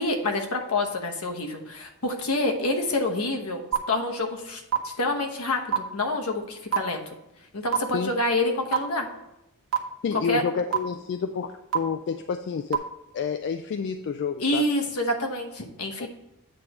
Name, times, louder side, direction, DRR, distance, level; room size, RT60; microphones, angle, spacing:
voice 1, 0.0-7.0 7.5-9.1 10.3-10.4 14.4-16.1, left 2 dB, 70° left, 3 dB, 1.0 m, -27 dB
sound 1, 3.7-3.8 4.7-4.8 5.7-5.8 6.7-6.8 7.7-7.8 8.7-8.8 9.7-9.8 10.7-10.8 11.7-11.8 12.7-12.8, right 9 dB, 65° right, 0.9 m, -21 dB
voice 2, 10.0-12.8 13.1-14.7 16.0-16.1, left 6 dB, 50° left, 8 dB, 0.3 m, -29 dB
8.4 x 3.2 x 6.0 m, 0.88 s
head